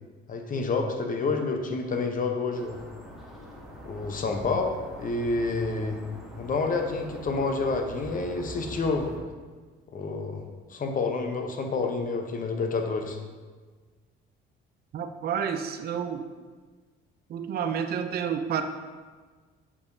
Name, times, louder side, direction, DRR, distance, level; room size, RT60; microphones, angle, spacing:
voice 1, 0.3-2.8 3.8-6.0 6.4-9.1 9.9-10.4 10.7-13.2, left 3 dB, 40° left, 4 dB, 0.8 m, -28 dB
sound 1, 2.5-9.2, equal, ahead, 1.4 m, -44 dB
voice 2, 14.9-16.3 17.3-18.6, right 7 dB, 50° right, 7 dB, 0.5 m, -30 dB
7.0 x 5.0 x 2.7 m, 1.4 s
cardioid pair, 95°, 21 cm